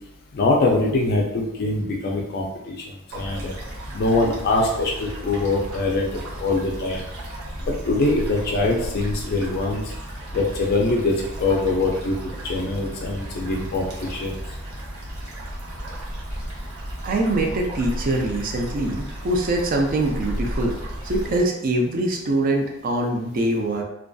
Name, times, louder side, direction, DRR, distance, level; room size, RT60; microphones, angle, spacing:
voice 1, 0.3-2.9 3.1-3.5 3.9-7.0 7.7-9.8 10.3-12.1 12.4-14.4, left 2 dB, 45° left, 0 dB, 0.3 m, -23 dB
sound 1, 3.1-21.4, equal, 85° right, 0.7 m, -34 dB
voice 2, 17.0-20.7 21.0-23.8, right 1 dB, 40° right, 1 dB, 0.4 m, -23 dB
2.5 x 2.2 x 2.2 m, 0.86 s
head